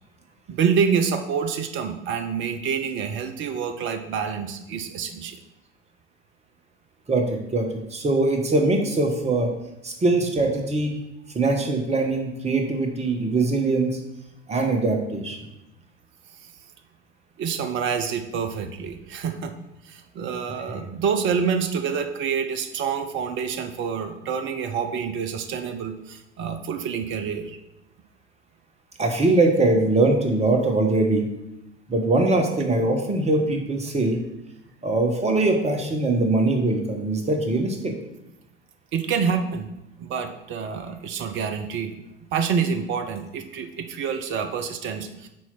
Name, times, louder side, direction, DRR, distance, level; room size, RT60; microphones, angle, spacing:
voice 1, 0.5-5.4 17.4-19.5 19.8-27.6 38.9-39.7 40.0-41.9 42.3-45.3, right 6 dB, 35° right, 7 dB, 0.7 m, -27 dB
voice 2, 7.1-9.5 9.8-11.0 11.3-14.0 14.5-15.4 29.0-31.3 31.9-34.2 34.8-37.9, right 2 dB, 20° right, 3 dB, 1.4 m, -22 dB
6.2 x 4.5 x 5.9 m, 0.90 s
figure-of-eight pair, 75°, 36 cm